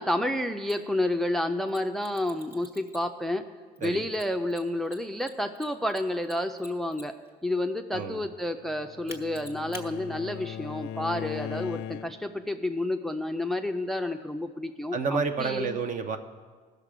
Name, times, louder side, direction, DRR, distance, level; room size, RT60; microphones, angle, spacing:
voice 1, 0.0-3.4 3.8-7.1 7.4-15.8, left 1 dB, ahead, 8 dB, 0.4 m, -30 dB
Mechanisms, 0.7-0.8 1.7-3.2 3.8-7.3 9.1-9.9, left 1 dB, 15° right, 1.3 m, -46 dB
voice 2, 7.9-8.2 14.9-16.2, right 4 dB, 50° right, 8 dB, 0.8 m, -29 dB
Bowed string instrument, 8.5-12.4, left 10 dB, 85° left, 0.4 m, -39 dB
16.5 x 6.7 x 5.0 m, 1.5 s
cardioid pair, 110°, 17 cm